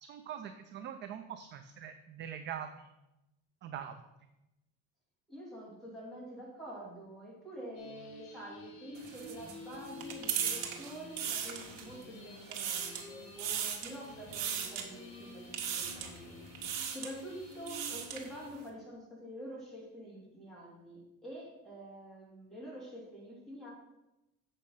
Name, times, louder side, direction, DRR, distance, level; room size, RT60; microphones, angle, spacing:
voice 1, 0.0-2.9 3.6-4.0, right 9 dB, 35° right, 8 dB, 0.4 m, -43 dB
voice 2, 5.3-16.4 16.9-23.7, equal, ahead, -5 dB, 2.6 m, -47 dB
sound 1, 7.7-18.5, left 2 dB, 65° left, 2.8 m, -51 dB
sound 2, 9.0-12.0 12.4-13.1 13.4-14.0 14.3-14.9 15.5-16.2 16.5-17.1 17.5-18.3, right 8 dB, 75° right, 1.8 m, -37 dB
8.2 x 6.4 x 5.5 m, 0.94 s
cardioid pair, 175°, 33 cm